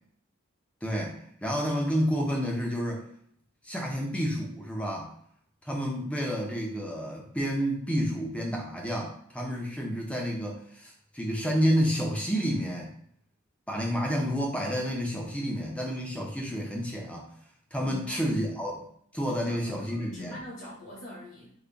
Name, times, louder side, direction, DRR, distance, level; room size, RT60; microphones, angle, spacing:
voice 1, 0.8-3.0 3.6-5.1 5.6-12.9 13.7-17.3 17.7-18.8 19.1-20.4, equal, 5° left, -1 dB, 0.5 m, -30 dB
voice 2, 17.8-18.3 19.4-21.5, equal, 55° left, -5 dB, 0.9 m, -43 dB
3.8 x 2.1 x 3.3 m, 0.66 s
head